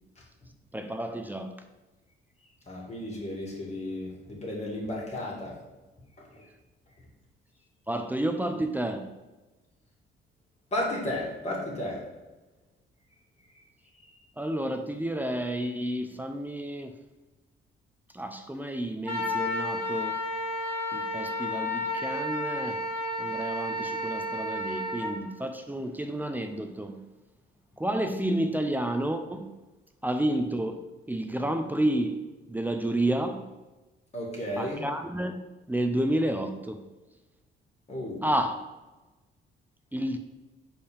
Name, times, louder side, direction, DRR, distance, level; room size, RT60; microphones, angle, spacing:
voice 1, 0.7-1.5 7.9-9.1 14.4-16.9 18.1-20.2 20.9-22.8 23.2-27.0 27.8-29.5 30.0-32.2 32.5-33.4 34.6-35.4 35.7-36.8 38.2-38.7 39.9-40.2, right 1 dB, 10° right, 0.5 m, -30 dB
voice 2, 2.7-5.6 10.7-12.0 34.1-34.8 37.9-38.3, left 1 dB, 35° left, 2.3 m, -33 dB
Wind instrument woodwind instrument, 19.0-25.1, left 1 dB, 5° left, 2.0 m, -31 dB
5.3 x 4.5 x 5.1 m
cardioid pair, 90°, 20 cm